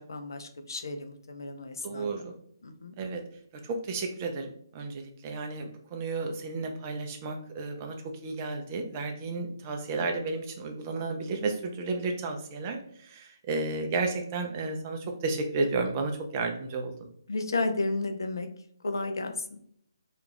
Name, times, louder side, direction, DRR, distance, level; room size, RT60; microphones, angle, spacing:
voice 1, 0.0-2.3 2.6-2.9 17.3-18.5 18.8-19.6, left 2 dB, 65° left, 7 dB, 0.4 m, -33 dB
voice 2, 1.8-2.3 3.0-3.2 3.6-8.0 8.2-17.1, right 3 dB, 30° right, 4 dB, 0.4 m, -32 dB
2.3 x 2.3 x 3.2 m, 0.65 s
figure-of-eight pair, 140°, 2 cm